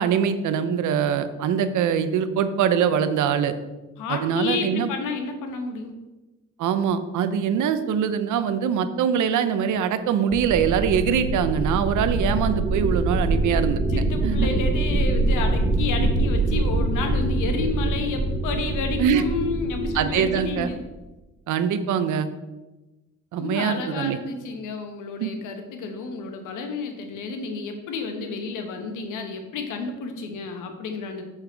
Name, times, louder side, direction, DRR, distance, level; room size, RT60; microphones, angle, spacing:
voice 1, 0.0-3.5 4.1-4.9 6.6-13.8 14.2-14.5 16.0-16.1 19.0-19.2 19.9-20.7 21.5-22.3 23.3-24.2 25.2-25.3, right 8 dB, 75° right, 11 dB, 0.7 m, -23 dB
voice 2, 4.0-5.9 13.1-13.3 13.9-20.8 23.4-31.2, left 4 dB, 85° left, 5 dB, 1.2 m, -30 dB
sound 1, 10.3-20.9, right 2 dB, 25° right, 0.9 m, -24 dB
6.9 x 5.7 x 4.5 m, 1.1 s
cardioid pair, 90°, 30 cm